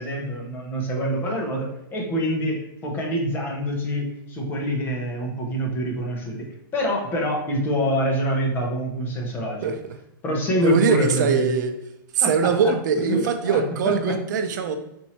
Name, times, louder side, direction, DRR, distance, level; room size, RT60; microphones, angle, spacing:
voice 1, 0.0-6.5 6.7-9.7 10.2-11.6 12.2-12.7 13.0-14.1, equal, 15° left, 0 dB, 0.9 m, -26 dB
voice 2, 10.6-11.7 12.1-14.8, right 6 dB, 55° right, 8 dB, 0.6 m, -22 dB
4.4 x 2.7 x 4.3 m, 0.85 s
hypercardioid pair, 160°, 12 cm